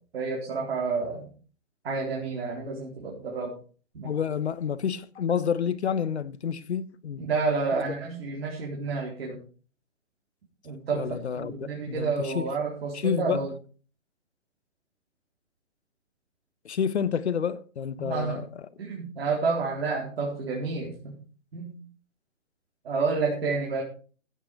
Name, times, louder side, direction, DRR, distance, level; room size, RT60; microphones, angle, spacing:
voice 1, 0.1-1.3 1.8-3.5 3.9-4.1 7.3-9.4 10.6-11.0 11.3-13.5 18.0-18.4 18.8-21.1 21.5-21.8 22.8-23.8, right 4 dB, 50° right, 4.2 m, -29 dB
voice 2, 4.0-7.2 7.7-7.8 10.9-12.5 12.9-13.4 16.6-18.5 23.4-23.5, left 7 dB, 55° left, 1.1 m, -29 dB
16.0 x 9.0 x 4.9 m
hypercardioid pair, 160°, 40 cm